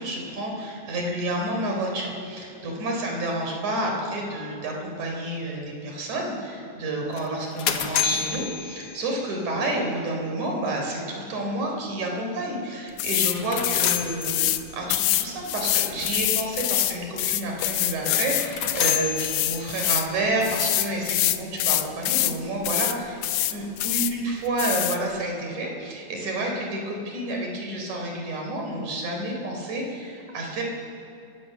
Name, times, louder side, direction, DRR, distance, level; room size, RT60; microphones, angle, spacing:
voice 1, 0.0-14.5 14.7-23.2 23.5-30.6, right 1 dB, 70° right, 1 dB, 5.1 m, -29 dB
sound 1, 7.2-9.4 13.2-14.9 18.2-20.0, left 9 dB, 55° left, 1.9 m, -30 dB
sound 2, 13.0-13.4 13.6-14.6 14.9-20.1 20.4-22.4 22.6-23.0 23.2-24.1 24.6-25.0, left 14 dB, 90° left, 2.4 m, -25 dB
30.0 x 16.5 x 6.7 m, 2.7 s
omnidirectional pair, 3.6 m